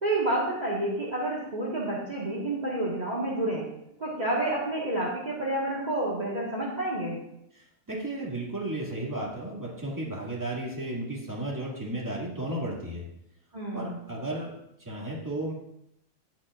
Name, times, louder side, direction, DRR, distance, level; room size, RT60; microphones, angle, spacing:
voice 1, 0.0-3.6 4.0-7.2 13.5-14.0, right 1 dB, 35° right, -5 dB, 1.8 m, -29 dB
voice 2, 7.5-13.0 13.7-14.5 14.8-15.5, right 1 dB, 15° right, -4 dB, 2.2 m, -34 dB
17.0 x 5.9 x 2.5 m, 0.79 s
omnidirectional pair, 1.2 m